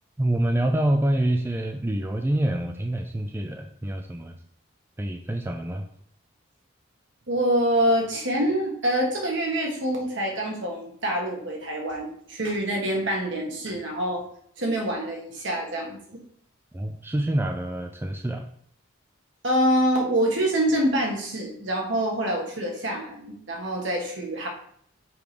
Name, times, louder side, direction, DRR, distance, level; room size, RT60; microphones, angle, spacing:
voice 1, 0.2-4.3 5.0-5.8 16.7-18.5, right 1 dB, 10° right, 4 dB, 0.4 m, -26 dB
voice 2, 7.3-14.2 14.6-16.2 19.4-24.5, right 1 dB, 65° right, 0 dB, 1.6 m, -26 dB
7.0 x 3.2 x 5.1 m, 0.63 s
head